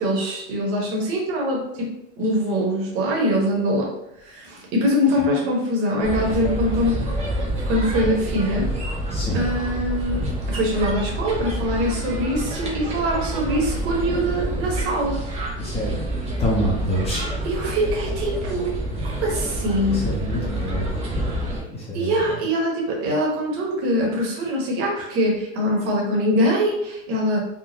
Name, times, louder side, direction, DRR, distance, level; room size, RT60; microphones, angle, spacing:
voice 1, 0.0-1.9 2.2-3.9 4.2-7.0 7.7-8.7 9.3-15.2 17.4-18.7 19.2-20.0 21.9-27.4, equal, 40° right, -2 dB, 1.1 m, -23 dB
sound 1, 6.0-21.6, right 1 dB, 20° right, 0.5 m, -27 dB
voice 2, 9.1-9.5 15.6-16.0 16.4-17.4 19.9-21.3 21.7-22.4, equal, 15° left, -4 dB, 0.7 m, -27 dB
3.7 x 2.2 x 2.8 m, 0.82 s
supercardioid pair, 145°, 35 cm